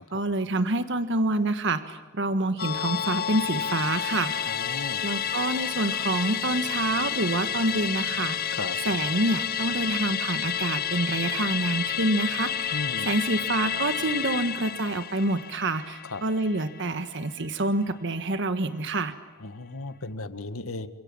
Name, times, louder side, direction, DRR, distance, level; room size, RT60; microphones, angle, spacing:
voice 1, 0.0-4.3 5.0-8.6 8.8-19.1, right 2 dB, 60° right, 10 dB, 1.4 m, -27 dB
Musical instrument, 2.6-17.3 17.6-17.7, left 9 dB, 45° left, 0.9 m, -30 dB
voice 2, 4.5-5.1 8.6-8.8 12.7-13.1 16.1-16.2 19.4-20.9, left 2 dB, 80° left, 11 dB, 1.8 m, -35 dB
29.0 x 26.5 x 7.5 m, 1.2 s
head